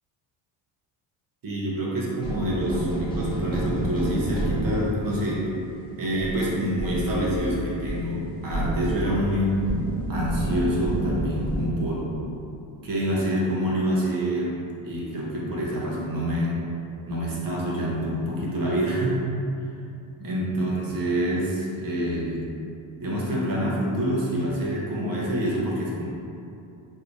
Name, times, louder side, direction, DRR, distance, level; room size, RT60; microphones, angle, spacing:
voice 1, 1.4-5.5 6.0-9.6 10.1-12.1 12.8-14.6 14.8-16.6 17.1-19.2 20.2-22.4 23.0-26.0, equal, 45° right, -5 dB, 0.8 m, -26 dB
sound 1, 2.2-11.7, right 1 dB, 10° left, 0.8 m, -29 dB
3.2 x 2.7 x 3.0 m, 2.7 s
cardioid pair, 105°, 49 cm